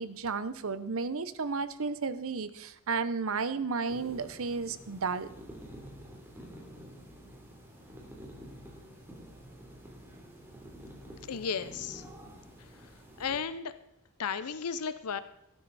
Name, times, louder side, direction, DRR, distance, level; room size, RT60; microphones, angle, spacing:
voice 1, 0.0-5.3, right 4 dB, 65° right, 13 dB, 0.8 m, -33 dB
sound 1, 3.9-13.4, equal, 10° right, 3.2 m, -49 dB
voice 2, 11.3-12.1 13.2-13.8 14.2-15.2, left 6 dB, 90° left, 13 dB, 0.6 m, -34 dB
14.5 x 12.5 x 4.1 m, 0.82 s
head